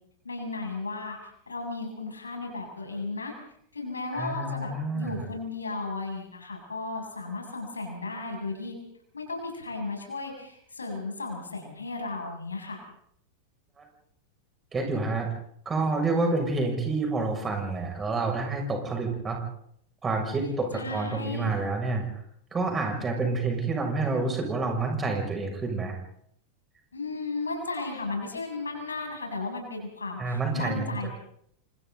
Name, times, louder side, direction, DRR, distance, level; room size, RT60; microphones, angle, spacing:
voice 1, 0.2-1.2 1.5-3.3 3.7-8.7 9.1-12.8 20.7-21.5 26.9-31.1, left 3 dB, 75° left, 2 dB, 7.3 m, -35 dB
voice 2, 4.1-5.2 13.8-13.9 14.7-15.3 15.6-19.4 20.0-22.2 22.5-26.0 30.2-31.1, right 3 dB, 20° right, 2 dB, 6.8 m, -28 dB
29.5 x 27.0 x 4.1 m, 0.68 s
figure-of-eight pair, 90°, 0 cm